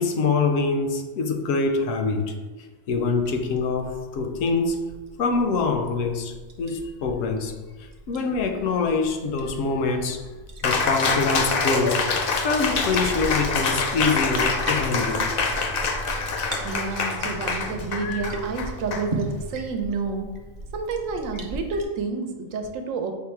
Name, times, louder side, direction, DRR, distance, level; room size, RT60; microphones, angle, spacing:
voice 1, 0.0-2.3 2.9-4.8 5.2-7.5 8.1-10.2 10.6-12.0 12.4-15.3, left 4 dB, 75° left, 6 dB, 0.9 m, -24 dB
Liquid, 2.9-21.8, right 2 dB, 55° right, 0.4 m, -38 dB
Cheering, 10.6-19.6, left 4 dB, 60° left, 0.6 m, -26 dB
voice 2, 16.2-20.3 20.7-23.1, right 4 dB, 80° right, 5 dB, 1.0 m, -29 dB
5.5 x 2.1 x 4.4 m, 1.3 s
omnidirectional pair, 1.4 m